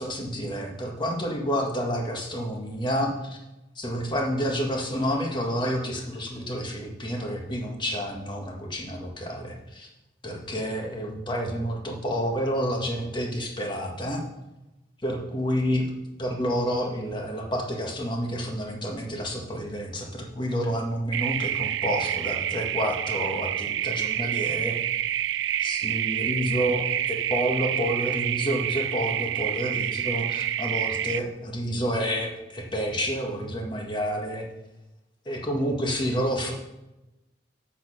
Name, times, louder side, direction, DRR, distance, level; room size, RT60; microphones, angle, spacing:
voice 1, 0.0-3.4 3.7-9.9 10.2-14.2 15.0-15.8 16.2-24.8 25.6-34.4 35.2-36.5, equal, 25° left, 0 dB, 1.7 m, -29 dB
sound 1, 21.1-31.2, right 11 dB, 70° right, 0.3 m, -28 dB
7.9 x 6.4 x 6.3 m, 0.95 s
head